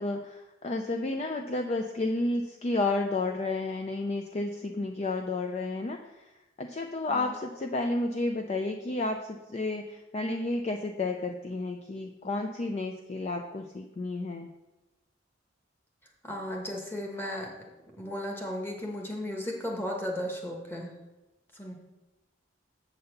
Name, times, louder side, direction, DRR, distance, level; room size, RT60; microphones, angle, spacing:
voice 1, 0.0-6.3 6.6-14.5, left 2 dB, 35° left, 4 dB, 0.4 m, -31 dB
voice 2, 16.2-17.5 18.0-20.9 21.5-21.7, left 1 dB, 10° left, 0 dB, 1.2 m, -35 dB
7.8 x 4.1 x 6.6 m, 1.0 s
head